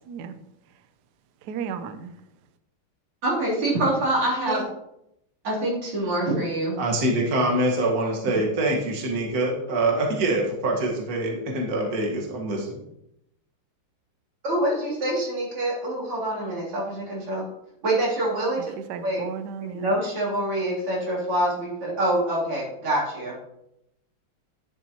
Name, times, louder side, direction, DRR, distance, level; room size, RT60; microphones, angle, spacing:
voice 1, 0.1-0.4 1.4-2.2 18.6-19.9, right 7 dB, 70° right, 10 dB, 1.0 m, -35 dB
voice 2, 3.2-4.6 5.4-6.8 14.4-17.4 17.8-18.7 19.0-19.3 19.7-23.4, right 1 dB, 90° right, -6 dB, 4.2 m, -25 dB
voice 3, 6.8-12.8, right 1 dB, 45° right, 0 dB, 1.9 m, -25 dB
11.0 x 7.4 x 2.9 m, 0.81 s
omnidirectional pair, 2.4 m